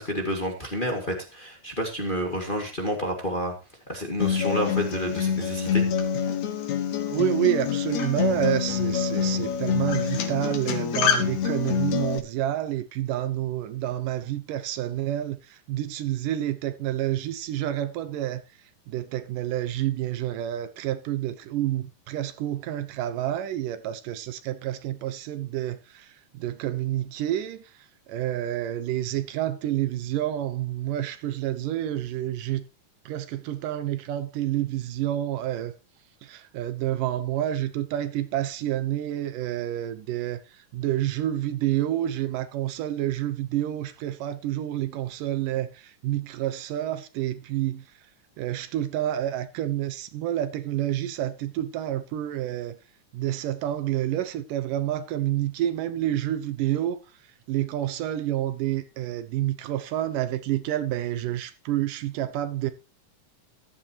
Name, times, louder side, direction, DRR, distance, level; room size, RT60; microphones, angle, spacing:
voice 1, 0.0-3.6 3.9-5.9, equal, 20° left, 1.7 m, -29 dB
Acoustic guitar, 4.2-12.2, left 7 dB, 65° left, 2.6 m, -26 dB
voice 2, 7.1-18.4 18.9-27.6 28.1-32.7 33.1-35.7 36.2-47.9 48.4-52.8 53.1-57.0 57.5-62.7, right 12 dB, 85° right, 2.6 m, -29 dB
14.5 x 12.0 x 3.0 m
omnidirectional pair, 3.7 m